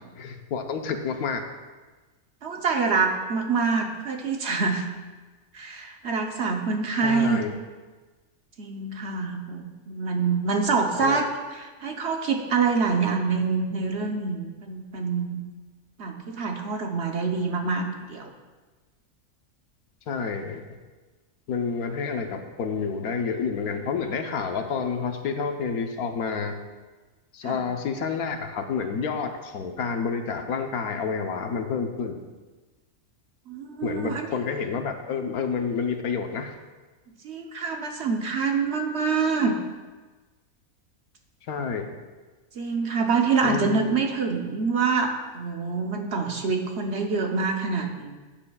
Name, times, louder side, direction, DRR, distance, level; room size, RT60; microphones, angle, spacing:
voice 1, 0.2-1.4 7.0-7.5 10.9-11.2 20.1-20.6 21.5-26.6 27.3-32.2 33.8-36.5 41.5-42.0 43.4-44.0, left 5 dB, 80° left, 5 dB, 1.3 m, -29 dB
voice 2, 2.4-4.9 5.5-7.4 8.6-15.4 16.0-18.3 27.4-27.6 33.5-34.3 37.2-39.5 42.5-48.1, right 4 dB, 55° right, 3 dB, 1.0 m, -26 dB
15.0 x 8.8 x 2.3 m, 1.3 s
omnidirectional pair, 1.5 m